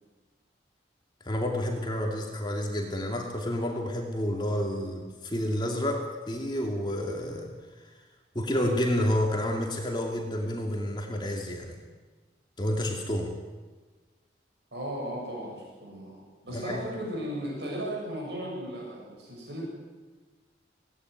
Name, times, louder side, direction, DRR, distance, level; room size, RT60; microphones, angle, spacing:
voice 1, 1.2-7.5 7.8-8.0 8.3-11.8 12.6-13.3 16.5-16.8, left 1 dB, 25° left, 1 dB, 2.6 m, -30 dB
voice 2, 14.7-19.7, right 1 dB, 75° right, -3 dB, 7.3 m, -36 dB
23.5 x 18.0 x 9.6 m, 1.3 s
head